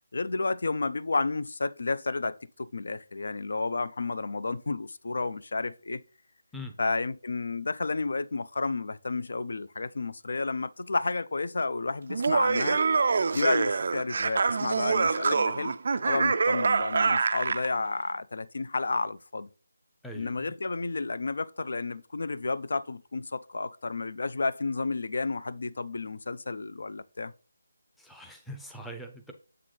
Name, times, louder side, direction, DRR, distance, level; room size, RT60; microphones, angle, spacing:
voice 1, 0.1-6.0 6.8-12.8 13.3-15.7 16.0-19.5 20.1-27.3, left 3 dB, 65° left, 0.4 m, -31 dB
Laughter, 12.1-17.7, right 4 dB, 50° right, 0.3 m, -25 dB
voice 2, 20.0-20.5 28.0-29.3, equal, ahead, 0.6 m, -42 dB
7.5 x 3.9 x 3.2 m
figure-of-eight pair, 165°, 0 cm